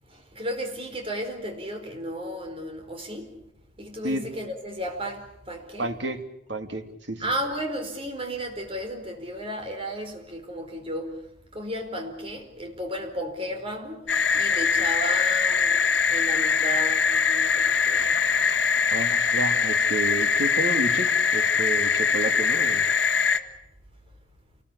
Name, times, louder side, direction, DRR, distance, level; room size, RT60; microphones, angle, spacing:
voice 1, 0.1-3.4 3.8-6.0 7.2-11.2 11.5-15.8 16.1-18.2, equal, 30° right, 4.6 m, -34 dB
voice 2, 5.8-6.2 6.5-7.3 18.9-22.8, right 2 dB, 70° right, 2.8 m, -31 dB
sound 1, 14.1-23.4, left 5 dB, 65° left, 1.8 m, -22 dB
28.0 x 20.5 x 8.5 m
head